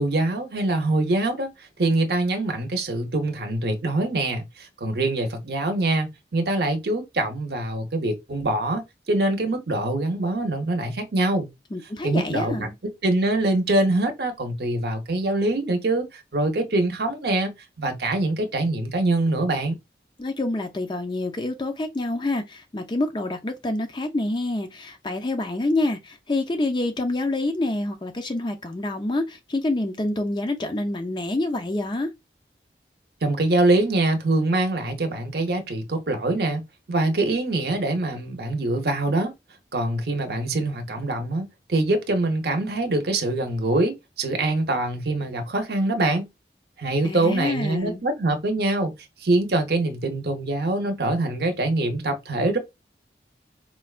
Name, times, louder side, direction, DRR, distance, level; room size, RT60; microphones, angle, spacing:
voice 1, 0.0-1.5 1.8-11.5 12.0-12.7 13.0-19.8 33.2-36.6 36.9-39.3 39.7-46.3 46.8-48.9 49.2-52.6, right 2 dB, 65° right, 0.7 m, -24 dB
voice 2, 11.7-12.7 20.2-32.1 47.0-48.0, left 2 dB, 25° left, 0.4 m, -27 dB
4.3 x 2.2 x 2.4 m
head